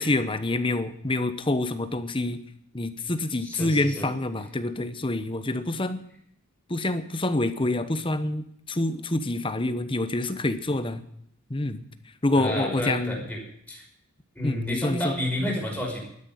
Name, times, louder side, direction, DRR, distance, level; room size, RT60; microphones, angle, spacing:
voice 1, 0.0-2.4 2.7-6.0 6.7-11.0 11.5-11.8 12.2-13.2 14.4-15.1, left 2 dB, 25° left, 11 dB, 1.0 m, -27 dB
voice 2, 3.4-4.1 12.3-13.4 13.7-13.8 14.4-16.0, left 1 dB, 5° left, -2 dB, 5.7 m, -30 dB
12.5 x 10.5 x 9.4 m, 0.70 s
head